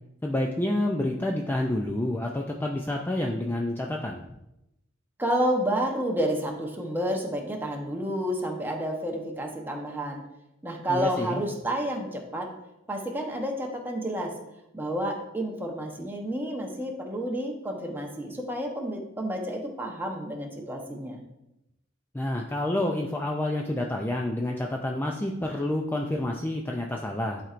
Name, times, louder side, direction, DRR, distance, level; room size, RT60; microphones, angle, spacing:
voice 1, 0.2-4.2 10.9-11.4 22.1-27.4, left 1 dB, 10° left, 0 dB, 0.4 m, -28 dB
voice 2, 5.2-10.2 10.6-12.5 12.9-14.3 14.7-21.2, equal, 10° right, 1 dB, 0.9 m, -30 dB
11.0 x 4.4 x 2.5 m, 0.88 s
head